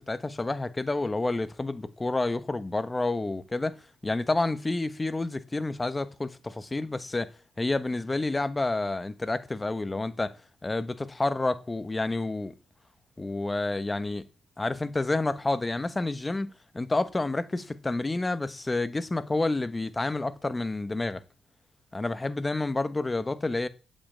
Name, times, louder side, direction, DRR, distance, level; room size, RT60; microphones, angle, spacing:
voice 1, 0.0-3.8 4.0-7.3 7.6-10.3 10.6-12.5 13.2-14.2 14.6-21.2 21.9-23.7, left 2 dB, 20° left, 1.2 m, -29 dB
9.1 x 7.8 x 8.8 m
cardioid pair, 90°, 0 cm